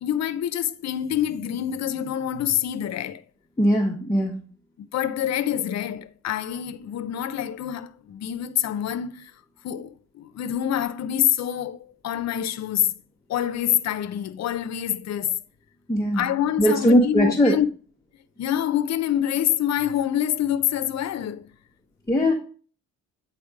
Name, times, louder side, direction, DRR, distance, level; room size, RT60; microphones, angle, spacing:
voice 1, 0.0-3.2 4.8-9.3 9.6-13.0 13.3-15.4 16.1-17.7 18.4-21.5, left 10 dB, 60° left, 0.7 m, -26 dB
voice 2, 3.6-4.4 15.9-16.3 16.6-17.6 22.1-22.3, equal, 10° left, 1.2 m, -19 dB
8.7 x 3.5 x 4.9 m
cardioid pair, 90°, 30 cm